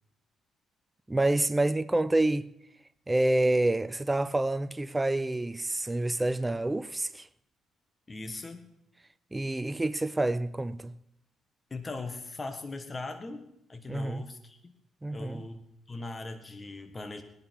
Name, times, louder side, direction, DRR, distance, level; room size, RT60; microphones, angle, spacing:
voice 1, 1.1-2.5 3.1-7.3 9.3-10.9 13.9-14.2 15.0-15.4, right 2 dB, 15° right, 0.5 m, -28 dB
voice 2, 8.1-8.7 11.7-14.7 15.1-17.2, left 3 dB, 25° left, 1.5 m, -40 dB
20.5 x 10.5 x 4.7 m
cardioid pair, 90°, 0 cm